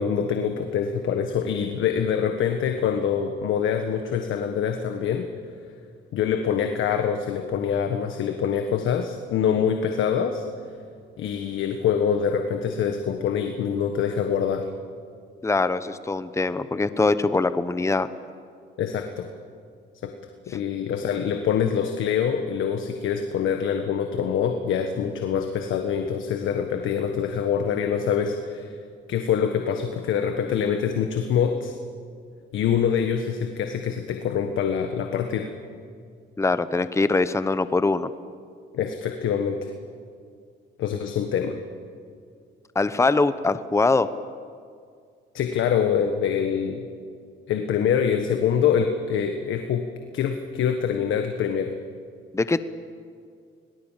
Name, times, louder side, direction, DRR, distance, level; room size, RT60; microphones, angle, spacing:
voice 1, 0.0-5.3 6.1-10.4 11.2-14.7 18.8-19.3 20.0-20.1 20.5-28.7 29.1-31.8 32.5-35.5 38.7-39.7 40.8-41.6 45.3-46.9 47.5-49.9 50.1-51.7, left 7 dB, 80° left, 6 dB, 1.5 m, -25 dB
voice 2, 15.4-18.1 36.4-38.1 42.7-44.1 52.3-52.6, left 3 dB, 15° left, 13 dB, 0.9 m, -22 dB
26.0 x 19.0 x 7.5 m, 2.2 s
cardioid pair, 90°, 20 cm